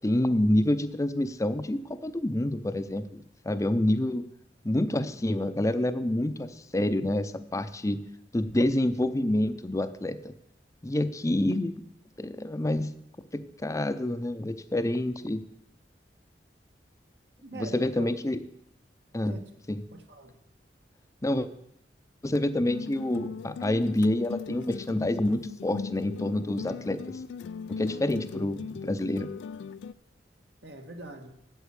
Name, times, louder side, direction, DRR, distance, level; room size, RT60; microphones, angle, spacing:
voice 1, 0.0-4.2 4.6-8.0 8.3-10.3 10.8-11.8 12.2-12.9 13.3-15.4 17.5-18.4 19.1-19.4 19.7-19.8 21.2-21.5 22.2-27.0 27.8-29.3, left 1 dB, 20° left, 12 dB, 0.5 m, -27 dB
voice 2, 17.4-18.1 19.2-19.4 19.9-20.4 30.6-31.3, right 2 dB, 70° right, 4 dB, 1.5 m, -43 dB
sound 1, 22.7-29.9, left 5 dB, 85° left, 0.3 m, -38 dB
8.2 x 8.0 x 8.1 m, 0.79 s
head